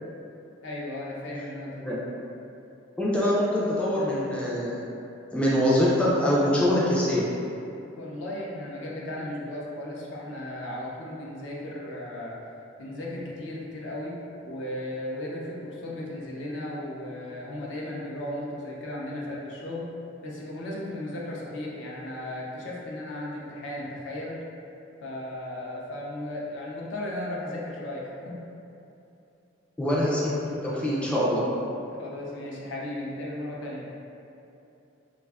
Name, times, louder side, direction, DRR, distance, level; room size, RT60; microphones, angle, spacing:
voice 1, 0.6-2.0 8.0-12.4 12.8-14.2 14.4-19.9 20.2-24.4 25.0-28.4 32.0-33.9, left 1 dB, 70° left, -4 dB, 0.5 m, -35 dB
voice 2, 3.0-4.8 5.3-7.3 29.8-31.4, left 1 dB, 5° left, -7 dB, 0.3 m, -24 dB
2.4 x 2.3 x 3.4 m, 2.8 s
head